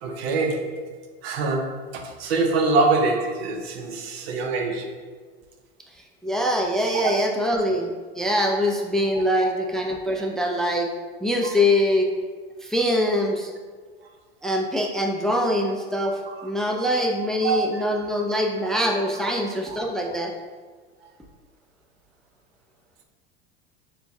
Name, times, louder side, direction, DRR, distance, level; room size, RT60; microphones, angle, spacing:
voice 1, 0.0-0.9 1.2-5.0 6.9-7.1 9.4-9.5 10.2-10.3 11.4-11.6 16.3-16.5 17.4-17.8 19.7-19.8, right 3 dB, 85° right, 4 dB, 0.7 m, -25 dB
voice 2, 6.2-7.9 8.2-10.9 11.2-12.1 12.6-13.5 14.4-20.3, left 1 dB, ahead, 1 dB, 0.3 m, -23 dB
6.6 x 2.2 x 2.6 m, 1.5 s
hypercardioid pair, 100°, 30 cm